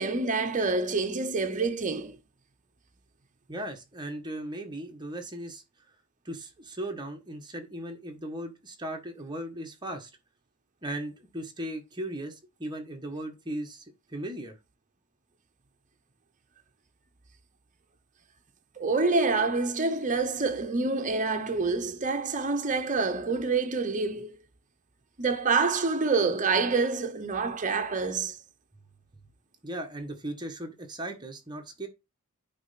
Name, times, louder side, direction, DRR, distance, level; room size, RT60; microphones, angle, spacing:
voice 1, 0.0-2.2 18.8-24.3 25.2-28.4, right 4 dB, 35° right, 0.9 m, -27 dB
voice 2, 3.5-5.6 6.2-10.1 10.8-13.8 14.1-14.6 29.6-31.9, right 1 dB, 20° right, 1.5 m, -37 dB
9.0 x 3.3 x 5.8 m
head